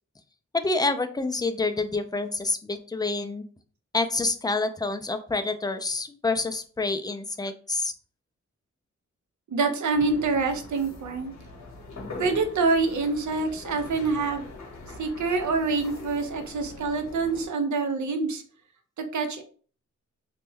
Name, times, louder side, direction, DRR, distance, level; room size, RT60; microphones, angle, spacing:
voice 1, 0.5-3.4 3.9-7.9, left 3 dB, 15° left, 8 dB, 0.3 m, -27 dB
voice 2, 9.5-11.3 12.2-14.4 15.0-18.4 19.0-19.4, right 4 dB, 75° right, 6 dB, 0.6 m, -26 dB
sound 1, 9.9-17.5, left 3 dB, 70° left, 0.9 m, -42 dB
3.1 x 2.1 x 3.4 m, 0.43 s
wide cardioid pair, 85°, 29 cm